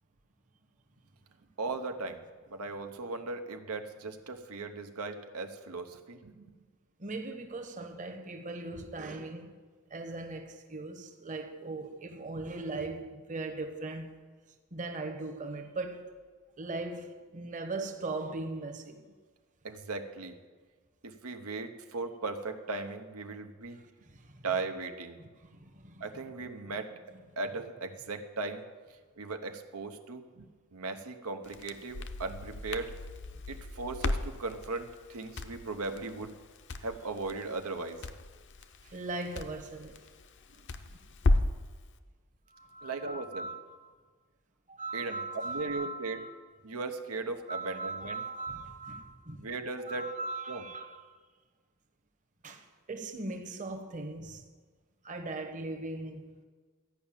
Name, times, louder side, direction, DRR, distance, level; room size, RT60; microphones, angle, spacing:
voice 1, 1.6-2.2 2.5-6.5 19.6-20.4 21.0-23.8 24.4-25.2 26.0-27.0 27.4-28.6 29.2-32.9 33.5-36.3 36.8-38.0 41.4-41.5 42.8-43.5 44.9-46.2 46.6-48.2 49.4-50.1 50.5-50.6, right 3 dB, 90° right, 0.9 m, -37 dB
voice 2, 7.0-9.6 9.9-14.1 14.7-16.1 16.6-19.0 23.7-24.4 25.2-26.2 33.3-33.4 38.8-40.0 40.5-40.6 40.9-41.0 42.5-43.9 44.7-46.3 47.5-49.4 49.8-51.0 52.4-54.4 55.0-56.3, right 2 dB, 35° right, 1.0 m, -39 dB
Crackle, 31.4-41.7, left 2 dB, 55° left, 0.6 m, -35 dB
13.0 x 5.6 x 8.9 m
head